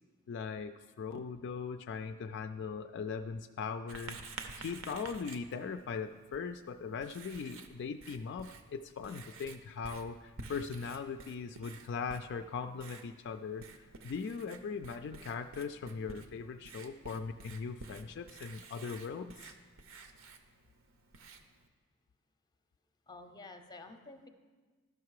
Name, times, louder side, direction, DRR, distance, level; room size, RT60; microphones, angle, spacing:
voice 1, 0.3-13.6 14.0-19.6, left 5 dB, 55° left, 8 dB, 0.3 m, -40 dB
Writing, 3.9-21.7, right 3 dB, 65° right, 0.7 m, -51 dB
voice 2, 23.1-24.3, left 3 dB, 20° left, 7 dB, 0.6 m, -50 dB
12.5 x 5.7 x 4.7 m, 1.4 s
head